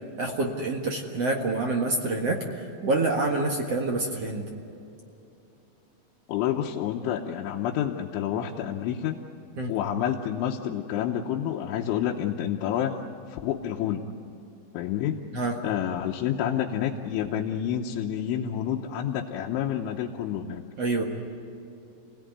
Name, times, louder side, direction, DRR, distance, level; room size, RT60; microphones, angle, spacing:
voice 1, 0.2-4.5 9.6-9.7 15.3-15.6 20.8-21.0, right 2 dB, 55° right, 0 dB, 1.9 m, -27 dB
voice 2, 6.3-9.2 9.7-13.0 13.3-14.0 14.8-15.2 15.6-20.6, left 10 dB, 90° left, 0 dB, 3.5 m, -29 dB
29.0 x 18.0 x 9.5 m, 2.8 s
omnidirectional pair, 5.3 m